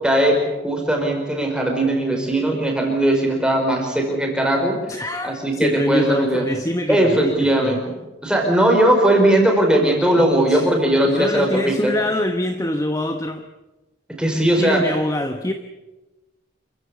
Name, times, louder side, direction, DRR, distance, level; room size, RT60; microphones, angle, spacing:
voice 1, 0.0-4.8 5.2-6.5 6.9-7.8 8.2-11.9 14.1-14.8, right 1 dB, 5° right, 1 dB, 5.1 m, -19 dB
voice 2, 4.9-7.8 10.5-10.7 11.0-13.4 14.6-15.5, left 1 dB, 15° left, 6 dB, 1.0 m, -24 dB
28.0 x 15.5 x 8.5 m, 1.1 s
head